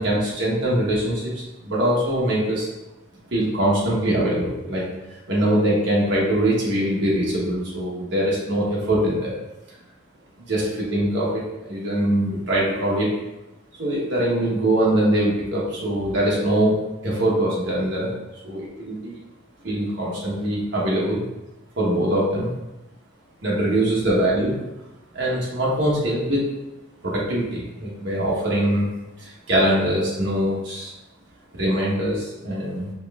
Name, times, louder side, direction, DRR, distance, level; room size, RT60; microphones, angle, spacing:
voice 1, 0.0-2.7 3.3-4.8 5.3-9.3 10.4-13.1 13.8-16.8 17.0-18.1 18.4-19.2 19.6-21.2 21.8-22.5 23.4-24.5 25.1-26.5 27.0-28.9 29.2-30.9 31.5-32.9, right 1 dB, 65° right, -6 dB, 1.0 m, -22 dB
5.1 x 3.0 x 2.4 m, 0.99 s
head